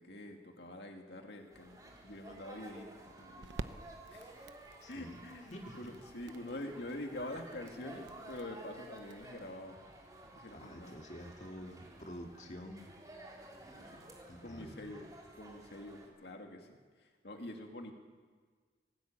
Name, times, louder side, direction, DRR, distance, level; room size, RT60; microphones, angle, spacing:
voice 1, 0.0-3.6 4.1-4.5 4.9-9.8 10.3-11.0 13.7-14.0 14.4-15.1 15.3-17.9, left 1 dB, 65° left, 3 dB, 2.2 m, -46 dB
sound 1, 1.3-9.2, right 2 dB, 80° right, 0.8 m, -51 dB
sound 2, 1.5-16.1, right 1 dB, 20° right, 3.6 m, -53 dB
voice 2, 4.8-5.2 5.5-5.9 10.5-12.9 14.3-14.8, equal, 40° left, 1 dB, 2.0 m, -48 dB
19.0 x 17.5 x 8.9 m, 1.5 s
head